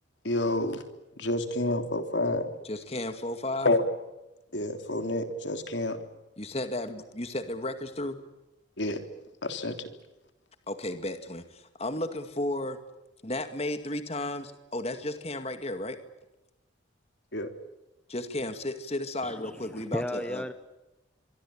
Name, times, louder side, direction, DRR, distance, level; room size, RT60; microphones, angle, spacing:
voice 1, 0.2-0.8 1.2-2.5 3.6-3.8 4.5-6.0 8.8-9.0 9.4-9.7 17.3-17.5, left 2 dB, 65° left, 7 dB, 3.4 m, -28 dB
voice 2, 2.6-3.7 6.4-8.2 10.7-12.8 13.2-16.0 18.1-20.4, left 1 dB, 30° left, 8 dB, 2.1 m, -33 dB
voice 3, 19.2-20.5, equal, 5° left, 10 dB, 1.0 m, -34 dB
24.5 x 24.5 x 8.8 m, 1.0 s
head